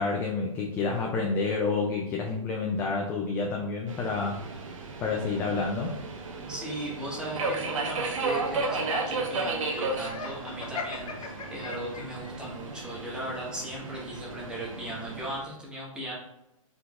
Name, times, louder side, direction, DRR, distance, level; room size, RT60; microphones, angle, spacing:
voice 1, 0.0-4.4 5.0-5.9, left 4 dB, 10° left, 0 dB, 0.3 m, -29 dB
Subway metro underground, 3.9-15.4, right 3 dB, 65° right, 1.1 m, -34 dB
voice 2, 6.5-16.1, right 1 dB, 5° right, -5 dB, 1.3 m, -37 dB
Laughter, 10.0-12.3, left 4 dB, 80° left, 1.0 m, -38 dB
4.6 x 3.8 x 2.4 m, 0.88 s
hypercardioid pair, 140°, 18 cm